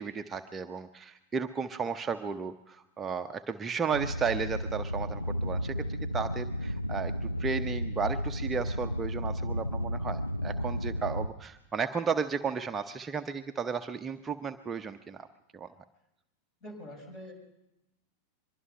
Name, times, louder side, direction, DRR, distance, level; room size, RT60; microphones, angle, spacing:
voice 1, 0.0-7.1 7.4-15.3 15.5-15.7, right 5 dB, 20° right, 7 dB, 0.8 m, -34 dB
sound 1, 3.9-11.3, equal, 90° left, 0.8 m, -33 dB
voice 2, 16.6-17.3, equal, 35° left, 5 dB, 7.1 m, -44 dB
24.0 x 22.5 x 5.5 m, 0.90 s
figure-of-eight pair, 90°, 0 cm